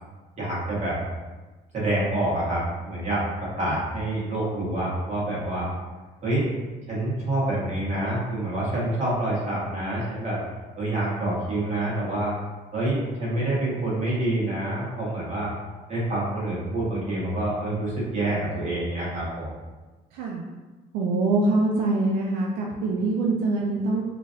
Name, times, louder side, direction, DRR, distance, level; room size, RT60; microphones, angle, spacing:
voice 1, 0.4-1.0 1.7-3.2 3.6-5.7 6.2-6.5 6.9-10.4 10.8-12.3 12.7-15.5 15.9-19.6, right 1 dB, 40° right, -7 dB, 1.4 m, -27 dB
voice 2, 20.1-20.4 20.9-24.0, right 2 dB, 80° right, -2 dB, 0.4 m, -24 dB
3.1 x 2.5 x 2.5 m, 1.2 s
cardioid pair, 110°, 17 cm